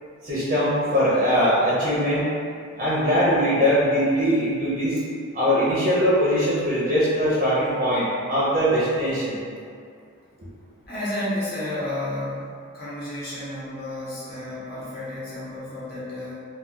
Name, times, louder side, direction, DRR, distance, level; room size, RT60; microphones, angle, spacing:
voice 1, 0.2-2.3 2.8-5.0 5.3-9.4, equal, 40° right, -9 dB, 0.6 m, -21 dB
voice 2, 10.9-12.5 12.7-16.3, left 1 dB, 50° left, -10 dB, 0.8 m, -31 dB
2.3 x 2.3 x 3.7 m, 2.3 s
head